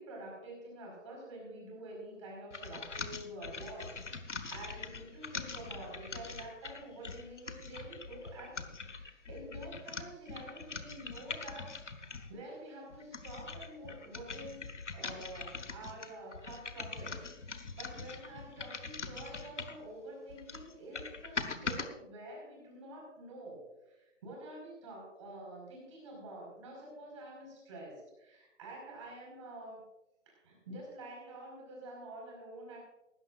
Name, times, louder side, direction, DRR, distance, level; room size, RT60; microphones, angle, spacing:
voice 1, 0.0-14.6 14.9-29.8 30.2-32.8, right 1 dB, 25° right, -1 dB, 5.1 m, -48 dB
sound 1, 2.5-12.4 12.9-19.9 20.3-21.9, left 4 dB, 65° left, 1.5 m, -43 dB
18.5 x 16.0 x 2.6 m, 0.97 s
figure-of-eight pair, 160°, 39 cm